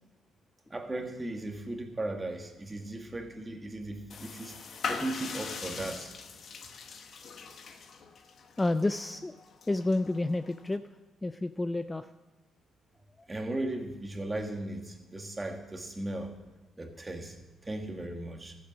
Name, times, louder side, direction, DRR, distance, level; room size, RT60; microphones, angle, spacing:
voice 1, 0.7-4.6 4.9-6.1 13.3-16.3 16.8-17.4 17.6-18.6, right 2 dB, 20° right, 4 dB, 1.6 m, -37 dB
sound 1, 4.1-10.8, left 5 dB, 55° left, 1.0 m, -41 dB
voice 2, 8.6-9.3 9.7-10.8 11.2-12.1, left 2 dB, 15° left, 10 dB, 0.4 m, -29 dB
13.5 x 7.5 x 6.3 m, 1.2 s
cardioid pair, 90°, 0 cm